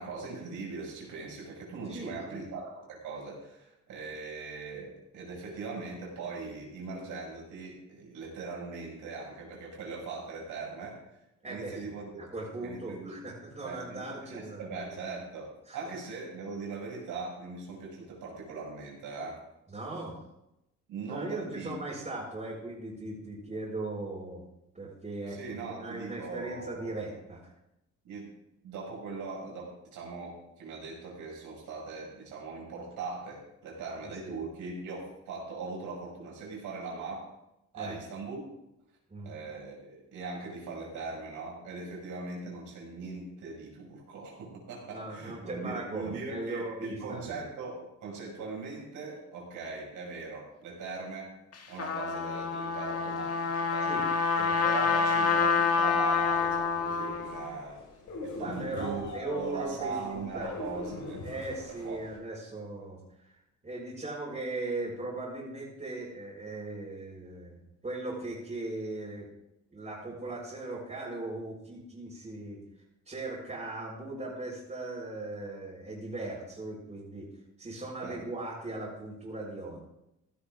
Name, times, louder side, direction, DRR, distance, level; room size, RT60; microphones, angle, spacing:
voice 1, 0.0-12.2 12.6-13.1 13.6-14.0 14.3-19.4 20.9-21.7 25.3-27.0 28.0-28.3 28.6-37.3 37.7-38.5 39.2-51.3 51.7-53.9 54.6-57.8 58.2-61.2 61.7-62.0 78.0-78.2, right 4 dB, 85° right, -2 dB, 6.0 m, -40 dB
voice 2, 1.9-2.5 11.4-11.8 12.2-15.1 15.7-15.9 19.7-20.3 21.1-24.4 24.7-27.5 34.0-34.3 37.7-38.0 39.1-39.4 44.8-47.4 53.8-54.0 54.4-54.6 58.3-60.6 61.2-67.6 67.8-69.3 69.7-77.3 77.6-79.9, right 2 dB, 25° right, -7 dB, 5.3 m, -39 dB
Trumpet, 51.5-57.5, left 5 dB, 55° left, 2.0 m, -27 dB
sound 1, 55.8-62.2, left 2 dB, 75° left, 5.3 m, -42 dB
16.5 x 13.0 x 3.7 m, 0.86 s
cardioid pair, 90°, 30 cm